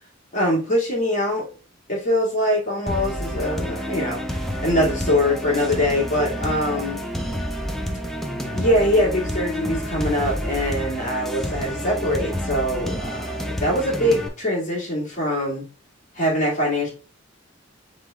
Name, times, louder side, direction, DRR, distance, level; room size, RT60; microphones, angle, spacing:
voice 1, 0.3-1.5 1.9-7.0 8.5-15.6 16.1-16.9, left 1 dB, 40° left, -3 dB, 1.8 m, -23 dB
sound 1, 2.9-14.3, left 1 dB, ahead, 0.5 m, -29 dB
sound 2, 3.1-13.5, right 10 dB, 55° left, 1.4 m, -39 dB
3.9 x 3.7 x 3.2 m, 0.35 s
head